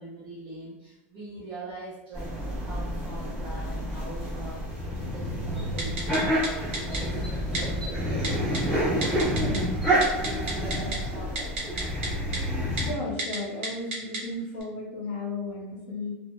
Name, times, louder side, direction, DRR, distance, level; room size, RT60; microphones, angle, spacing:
voice 1, 0.0-8.1 8.6-9.0 10.2-11.6, right 2 dB, 35° right, -7 dB, 0.6 m, -42 dB
sound 1, 2.1-12.9, equal, ahead, 0.8 m, -28 dB
Typing, 5.8-6.2 6.4-6.5 6.7-7.0 7.5-7.6 8.2-8.6 9.0-9.6 9.9-11.0 11.4-12.1 12.3-12.4 12.8-12.9 13.2-13.4 13.6-14.2 14.6-14.7, right 3 dB, 90° right, 0.8 m, -31 dB
voice 2, 12.7-16.1, left 2 dB, 65° left, -4 dB, 0.9 m, -34 dB
2.1 x 2.0 x 3.0 m, 0.94 s
supercardioid pair, 175°, 7 cm